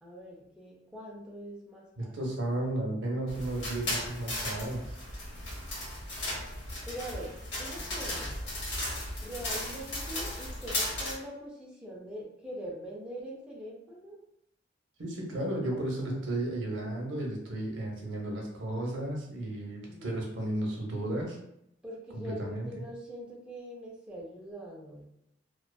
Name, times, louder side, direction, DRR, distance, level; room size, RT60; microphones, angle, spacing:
voice 1, 0.0-2.2 6.9-8.5 9.2-14.2 15.7-16.3 19.9-20.2 21.8-25.2, equal, 5° right, -4 dB, 0.5 m, -43 dB
voice 2, 2.0-4.9 15.0-21.4 22.1-22.8, right 1 dB, 75° right, 0 dB, 0.6 m, -34 dB
sound 1, 3.3-11.1, left 1 dB, 65° left, 1.0 m, -36 dB
2.4 x 2.3 x 2.2 m, 0.76 s
head